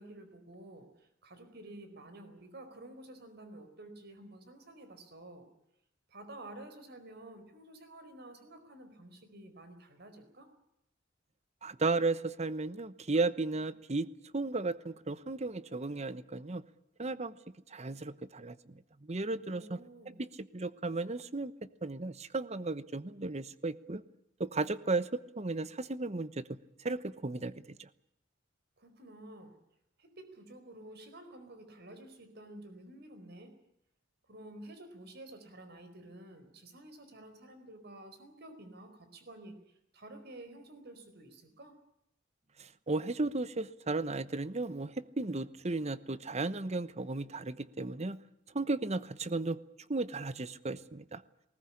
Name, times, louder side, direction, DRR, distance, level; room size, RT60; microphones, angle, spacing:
voice 1, 0.0-5.5 6.1-10.5 19.4-20.2 28.8-29.5 30.0-33.5 34.3-39.6 39.9-41.7, right 1 dB, 60° right, 8 dB, 4.6 m, -51 dB
voice 2, 11.6-16.6 17.0-17.3 17.7-18.6 19.0-19.8 20.1-21.5 21.8-24.0 24.4-26.6 26.8-27.9 42.9-48.2 48.5-49.6 49.9-51.2, right 3 dB, 35° right, 15 dB, 1.0 m, -34 dB
19.5 x 19.5 x 9.9 m, 0.77 s
head